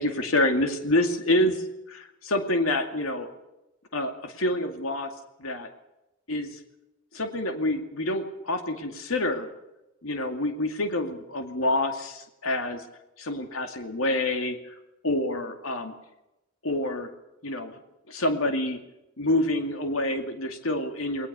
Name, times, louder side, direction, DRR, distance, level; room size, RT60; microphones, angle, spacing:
voice 1, 0.0-3.3 3.9-5.1 5.4-5.7 6.3-6.6 7.1-9.5 10.0-12.8 13.2-14.7 15.0-15.9 16.6-17.1 17.4-17.7 18.1-18.8 19.2-21.3, left 1 dB, 75° left, 5 dB, 2.4 m, -27 dB
20.0 x 19.5 x 6.9 m, 0.93 s
head